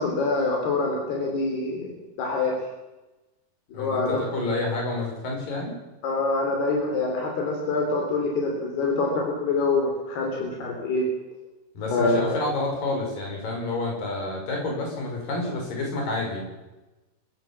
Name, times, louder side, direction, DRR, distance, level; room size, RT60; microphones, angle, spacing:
voice 1, 0.0-1.9 2.2-2.5 3.7-4.2 6.0-11.0 11.9-12.4, left 3 dB, 80° left, 1 dB, 5.4 m, -25 dB
voice 2, 3.7-5.8 11.8-16.4, left 2 dB, 60° left, 1 dB, 7.0 m, -29 dB
24.0 x 15.0 x 7.3 m, 1.1 s
omnidirectional pair, 4.5 m